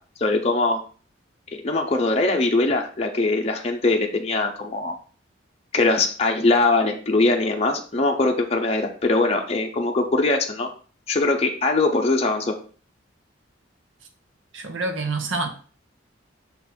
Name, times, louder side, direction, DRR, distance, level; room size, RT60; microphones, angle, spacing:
voice 1, 0.2-0.8 1.5-4.9 5.7-10.7 11.1-12.5, left 2 dB, 30° left, 0.7 m, -21 dB
voice 2, 14.5-15.5, right 3 dB, 75° right, 1.0 m, -27 dB
5.8 x 4.0 x 4.3 m
head